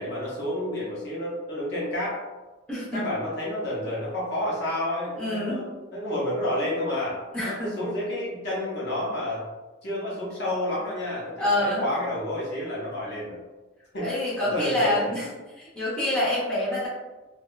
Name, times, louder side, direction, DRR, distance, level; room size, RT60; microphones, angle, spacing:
voice 1, 0.0-2.2 2.9-9.4 9.8-13.4 13.9-14.1 14.4-15.1, left 1 dB, 55° left, -6 dB, 0.7 m, -30 dB
voice 2, 2.7-3.0 5.2-5.7 7.3-7.7 11.4-11.8 14.0-15.2 15.6-16.9, left 1 dB, 5° left, -10 dB, 0.8 m, -26 dB
2.6 x 2.3 x 2.3 m, 1.2 s
head